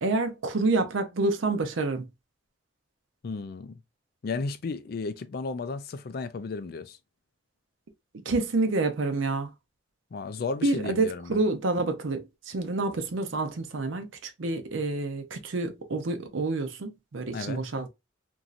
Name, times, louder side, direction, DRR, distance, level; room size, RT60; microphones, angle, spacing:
voice 1, 0.0-2.1 8.1-9.5 10.6-17.9, right 3 dB, 80° right, 0.6 m, -28 dB
voice 2, 3.2-3.7 4.2-7.0 10.1-11.4 17.3-17.6, left 4 dB, 50° left, 0.3 m, -34 dB
3.0 x 2.6 x 2.4 m
head